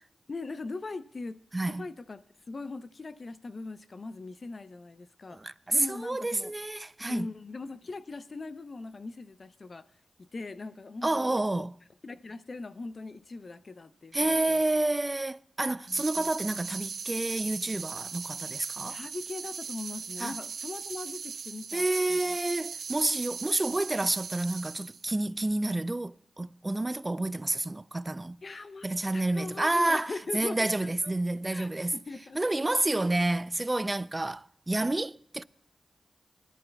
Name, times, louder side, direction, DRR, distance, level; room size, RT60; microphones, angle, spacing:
voice 1, 0.3-5.4 5.7-6.5 7.0-9.8 10.2-11.7 12.0-14.6 15.9-16.3 18.9-21.8 22.1-22.2 28.4-31.1 31.5-32.4, left 3 dB, 50° left, 0.5 m, -40 dB
voice 2, 1.5-1.8 5.3-7.3 11.0-11.7 14.1-19.0 20.2-20.4 21.7-28.4 28.8-31.9 32.4-35.4, right 2 dB, 25° right, 0.3 m, -29 dB
sound 1, 15.9-25.0, right 6 dB, 80° right, 0.5 m, -39 dB
20.5 x 11.0 x 2.2 m
cardioid pair, 60°, 0 cm